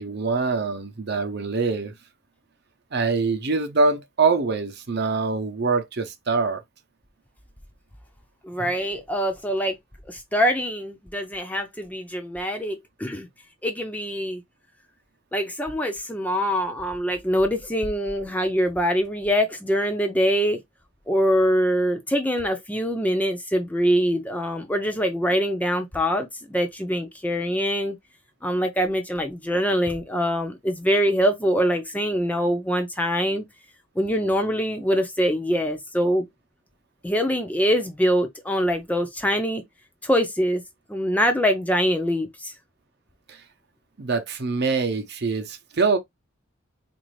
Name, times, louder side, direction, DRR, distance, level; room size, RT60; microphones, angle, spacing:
voice 1, 0.0-1.9 2.9-6.6 43.3-43.4 44.0-46.0, right 4 dB, 50° right, 0.7 m, -24 dB
voice 2, 8.4-9.8 10.1-13.3 13.6-14.4 15.3-20.6 21.1-28.0 28.4-33.4 34.0-36.3 37.0-39.6 40.0-40.6 40.9-42.5, equal, 5° left, 0.5 m, -24 dB
4.0 x 2.6 x 3.1 m
head